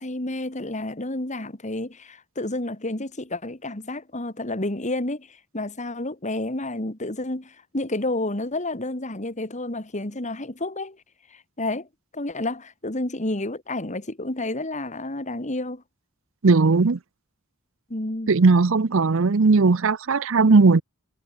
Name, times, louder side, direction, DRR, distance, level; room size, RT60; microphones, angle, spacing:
voice 1, 0.0-11.0 11.3-11.9 12.1-15.8 17.9-18.3, left 2 dB, 35° left, 2.2 m, -30 dB
voice 2, 16.4-17.0 18.3-20.8, right 4 dB, 60° right, 0.7 m, -17 dB
head